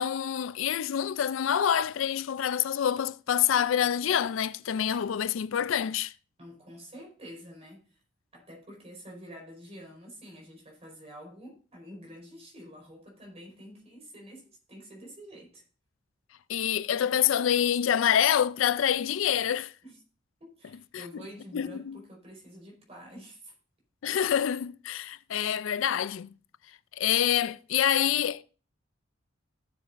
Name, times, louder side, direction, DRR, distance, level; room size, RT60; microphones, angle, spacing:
voice 1, 0.0-6.1 16.5-19.7 20.9-21.2 21.5-22.0 24.0-26.3 26.9-28.4, left 9 dB, 80° left, 0.4 m, -26 dB
voice 2, 6.4-8.0 8.3-15.6 19.8-20.0 20.4-23.5, equal, 30° right, 4.6 m, -48 dB
15.5 x 7.3 x 2.6 m
head